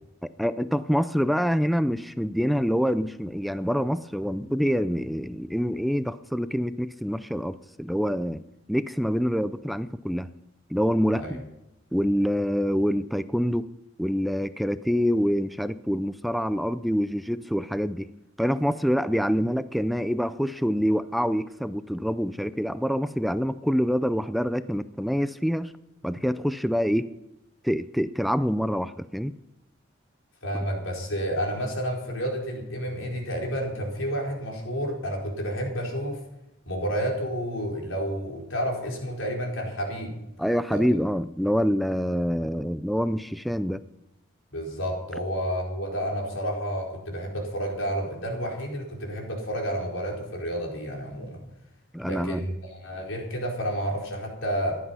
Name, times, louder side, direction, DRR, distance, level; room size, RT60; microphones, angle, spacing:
voice 1, 0.4-8.4 8.7-10.3 10.7-11.4 11.9-13.7 14.0-18.1 18.4-25.7 26.0-27.1 27.6-29.3 40.4-43.8 51.9-52.4, equal, ahead, 13 dB, 0.4 m, -26 dB
voice 2, 30.4-36.2 36.7-40.1 40.7-40.8 44.5-51.4 52.0-54.8, equal, 90° left, 0 dB, 4.4 m, -30 dB
15.5 x 11.0 x 5.6 m, 0.89 s
head